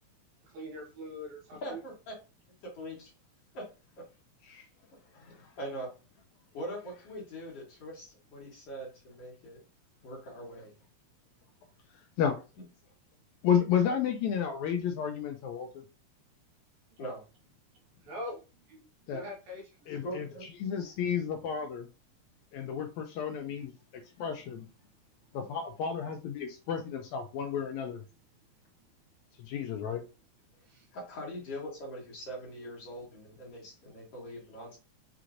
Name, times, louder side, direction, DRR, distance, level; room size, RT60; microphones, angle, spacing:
voice 1, 0.4-1.8 18.0-18.8 19.1-20.0 30.6-30.9, equal, 70° right, -1 dB, 2.6 m, -43 dB
voice 2, 1.6-2.1 2.7-3.1 3.5-3.7 4.0-4.1 5.1-5.9 6.5-9.6 10.0-10.7 17.0-17.2 20.0-20.5 30.9-34.8, equal, 55° left, -3 dB, 2.2 m, -42 dB
voice 3, 13.4-15.7 19.1-19.2 19.9-20.3 20.6-21.9 22.5-23.7 24.2-24.7 25.3-28.0 29.4-30.0, left 8 dB, 80° left, 5 dB, 1.7 m, -31 dB
5.8 x 3.0 x 2.5 m, 0.31 s
omnidirectional pair, 3.6 m